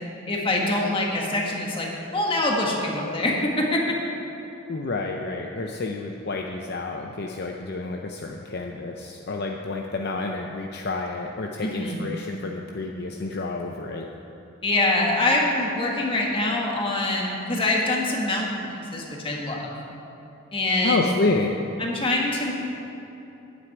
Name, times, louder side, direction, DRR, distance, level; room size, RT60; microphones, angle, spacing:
voice 1, 0.3-3.8 11.6-12.0 14.6-19.7 20.5-21.1 21.8-22.5, left 2 dB, 25° left, -1 dB, 1.6 m, -24 dB
voice 2, 4.7-14.1 20.8-21.5, left 3 dB, 50° left, 1 dB, 0.6 m, -29 dB
9.4 x 7.7 x 9.2 m, 3.0 s
head